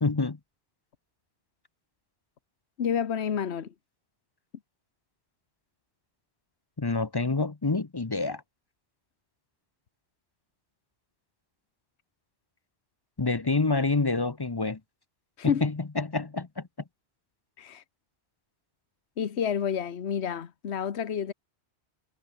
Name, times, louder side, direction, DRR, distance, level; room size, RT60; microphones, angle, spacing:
voice 1, 0.0-0.4 6.8-8.4 13.2-14.8 15.4-16.6, left 3 dB, 25° left, 0.8 m, -27 dB
voice 2, 2.8-3.7 15.4-15.6 17.6-17.8 19.2-21.3, left 7 dB, 75° left, 1.4 m, -29 dB
omnidirectional pair, 1.1 m